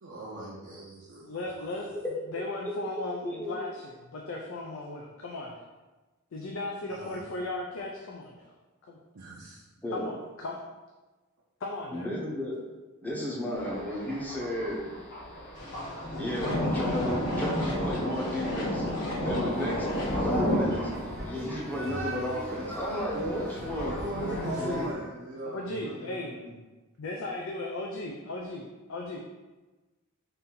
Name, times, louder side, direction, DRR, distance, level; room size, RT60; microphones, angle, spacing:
voice 1, 0.0-1.6 6.9-7.2 9.2-9.6 23.7-26.6, right 1 dB, 55° right, -5 dB, 0.6 m, -40 dB
voice 2, 1.2-2.0 2.3-5.5 6.3-8.5 8.9-9.0 9.9-10.6 11.6-12.1 24.1-24.9 25.5-26.3 27.0-29.2, left 2 dB, 65° left, 0 dB, 0.4 m, -36 dB
voice 3, 3.2-3.7 9.8-10.1 11.9-12.6 13.0-14.8 16.2-18.8 19.1-19.9 20.1-24.0 24.3-24.9, left 1 dB, 10° left, -4 dB, 0.8 m, -33 dB
Thunder, 13.5-24.8, left 1 dB, 45° left, 1.3 m, -33 dB
sound 1, 15.5-20.8, left 1 dB, 85° left, 1.3 m, -41 dB
sound 2, 19.4-24.9, right 1 dB, 80° right, 1.2 m, -39 dB
4.2 x 2.6 x 3.8 m, 1.2 s
head